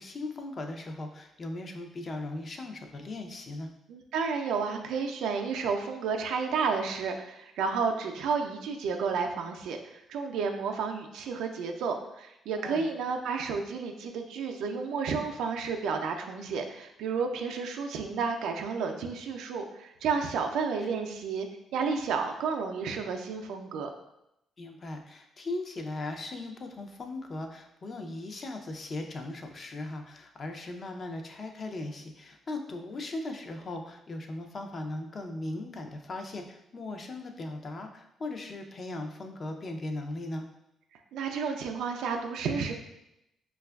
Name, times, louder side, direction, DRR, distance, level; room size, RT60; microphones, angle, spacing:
voice 1, 0.0-3.7 12.6-12.9 24.6-40.5, left 2 dB, 40° left, 4 dB, 0.5 m, -38 dB
voice 2, 3.9-21.5 21.7-23.9 41.1-42.7, right 5 dB, 85° right, 4 dB, 0.4 m, -31 dB
4.9 x 2.3 x 2.2 m, 0.84 s
cardioid pair, 90°, 0 cm